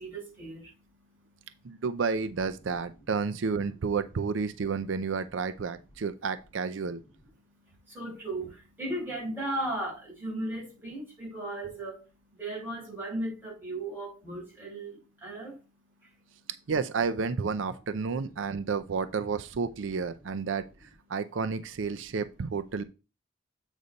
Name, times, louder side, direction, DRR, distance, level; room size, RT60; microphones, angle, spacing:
voice 1, 0.0-1.8 7.5-15.6 16.0-16.2, right 1 dB, 10° right, 5.0 m, -37 dB
voice 2, 1.6-7.0 16.7-22.8, right 5 dB, 75° right, 0.5 m, -31 dB
8.2 x 4.1 x 5.2 m
head